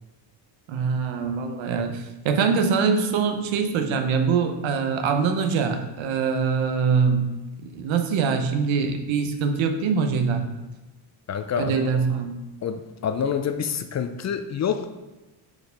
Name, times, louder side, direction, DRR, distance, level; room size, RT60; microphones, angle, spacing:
voice 1, 0.7-7.3 7.6-10.4 11.6-12.4, right 5 dB, 80° right, 6 dB, 0.9 m, -23 dB
voice 2, 11.3-11.9 12.6-14.9, left 7 dB, 40° left, 8 dB, 0.4 m, -27 dB
4.8 x 4.4 x 5.1 m, 1.1 s
cardioid pair, 115°, 46 cm